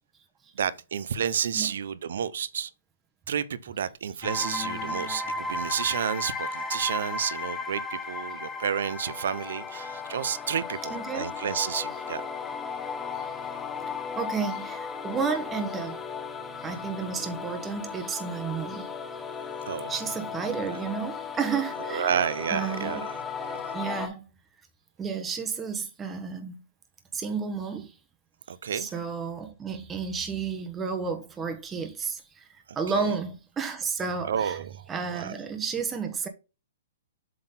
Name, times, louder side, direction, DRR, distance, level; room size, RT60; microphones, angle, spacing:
voice 1, 0.6-2.7 3.3-12.2 19.7-19.9 21.9-23.5 28.5-28.9 32.9-33.1 34.3-34.8 35.1-35.3, right 8 dB, 70° right, 0.7 m, -30 dB
sound 1, 4.2-24.1, left 4 dB, 15° left, 0.8 m, -35 dB
voice 2, 10.9-11.3 13.1-13.3 14.2-16.0 16.6-18.9 19.9-22.2 22.5-23.0 23.7-24.3 25.0-26.6 27.1-27.9 28.7-34.6 34.9-36.3, right 5 dB, 15° right, 1.2 m, -32 dB
7.6 x 3.9 x 3.8 m
hypercardioid pair, 135°, 0 cm